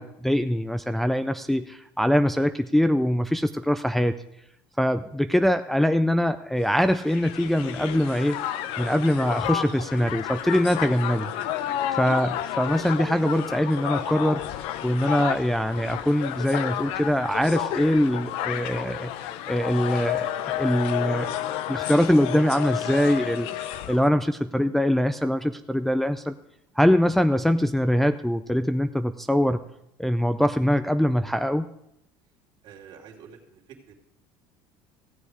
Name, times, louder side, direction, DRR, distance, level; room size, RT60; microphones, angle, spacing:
voice 1, 0.0-4.2 4.8-8.4 8.8-11.3 12.0-14.4 14.8-19.1 19.5-21.3 21.7-23.5 23.9-26.3 26.8-29.6 30.0-31.7, equal, ahead, 8 dB, 0.4 m, -23 dB
Crowd, 6.7-24.1, left 11 dB, 70° left, 0.7 m, -31 dB
voice 2, 32.6-33.9, right 7 dB, 55° right, -2 dB, 2.7 m, -48 dB
15.0 x 7.8 x 4.8 m, 0.80 s
cardioid pair, 125°, 10 cm